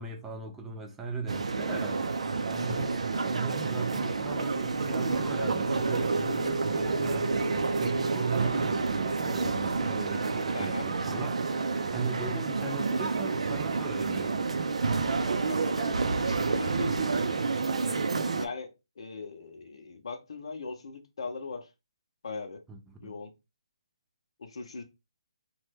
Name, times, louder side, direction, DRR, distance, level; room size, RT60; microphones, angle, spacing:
voice 1, 0.0-2.1 2.5-7.3 7.8-11.4 11.9-14.4 22.7-23.1, right 4 dB, 5° right, 0.3 m, -38 dB
sound 1, 1.3-18.5, right 4 dB, 80° right, 0.4 m, -29 dB
sound 2, 2.7-3.1 3.4-3.9 4.2-4.6 4.9-5.3 5.7-6.1 6.4-6.6, left 3 dB, 75° left, 1.0 m, -45 dB
sound 3, 3.7-11.8, right 2 dB, 30° right, 1.0 m, -36 dB
voice 2, 10.5-10.9 15.5-17.3 18.4-21.7 22.2-22.6 23.0-23.3 24.4-24.8, left 4 dB, 55° left, 0.6 m, -40 dB
2.9 x 2.2 x 3.2 m
hypercardioid pair, 170°, 3 cm